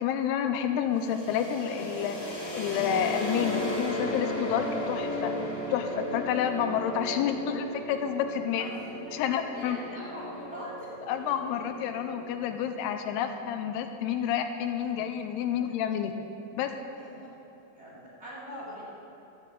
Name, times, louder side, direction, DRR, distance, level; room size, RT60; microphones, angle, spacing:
voice 1, 0.0-2.2 2.5-5.3 5.7-8.7 9.1-9.8 11.1-16.1 16.6-16.7, left 8 dB, 80° left, 7 dB, 2.5 m, -29 dB
sound 1, 0.9-12.6, left 1 dB, 25° left, 2.1 m, -35 dB
voice 2, 8.5-9.2 9.5-10.9 11.4-11.5 17.0-17.3 17.7-18.8, equal, 20° right, -7 dB, 2.5 m, -42 dB
14.0 x 6.8 x 7.6 m, 3.0 s
omnidirectional pair, 4.9 m